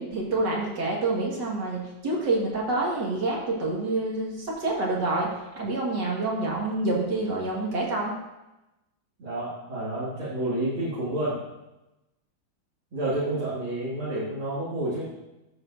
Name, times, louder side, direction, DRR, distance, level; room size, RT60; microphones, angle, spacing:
voice 1, 0.0-5.3 5.6-8.1, right 2 dB, 60° right, -3 dB, 2.5 m, -27 dB
voice 2, 9.2-11.4 12.9-15.0, right 1 dB, 80° right, -11 dB, 3.3 m, -29 dB
14.0 x 7.2 x 2.7 m, 0.98 s
omnidirectional pair, 2.2 m